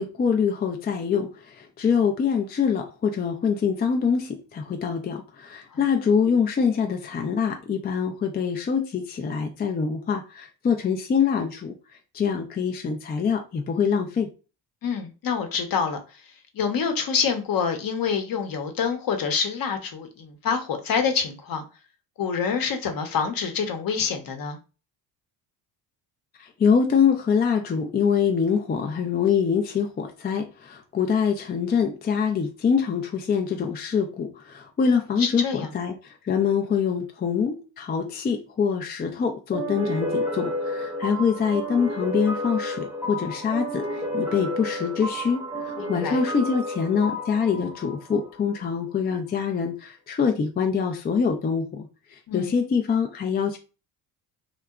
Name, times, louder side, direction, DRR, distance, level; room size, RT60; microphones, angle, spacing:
voice 1, 0.0-11.7 12.1-14.3 26.4-35.4 35.7-51.9 52.3-53.6, left 6 dB, 25° left, 0.4 m, -24 dB
voice 2, 14.8-16.0 16.5-21.6 22.2-24.6 35.2-35.7 45.8-46.2 52.3-52.5, left 6 dB, 50° left, 0.8 m, -26 dB
sound 1, 39.5-48.8, left 1 dB, 5° right, 0.7 m, -31 dB
2.7 x 2.2 x 2.3 m
supercardioid pair, 70°, 44 cm